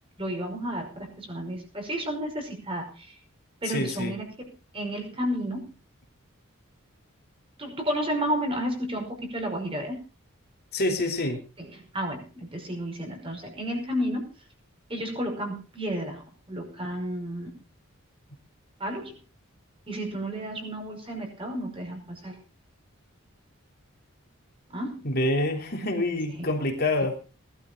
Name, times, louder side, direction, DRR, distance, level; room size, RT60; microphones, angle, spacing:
voice 1, 0.2-3.2 3.6-5.7 7.6-10.0 11.6-14.3 14.9-17.5 18.8-19.2 19.9-22.4 24.7-25.1 26.4-26.5, equal, 25° right, 3 dB, 5.5 m, -32 dB
voice 2, 3.7-4.1 10.7-11.4 25.0-27.1, left 1 dB, 45° left, 3 dB, 3.4 m, -26 dB
19.5 x 12.5 x 3.9 m, 0.33 s
head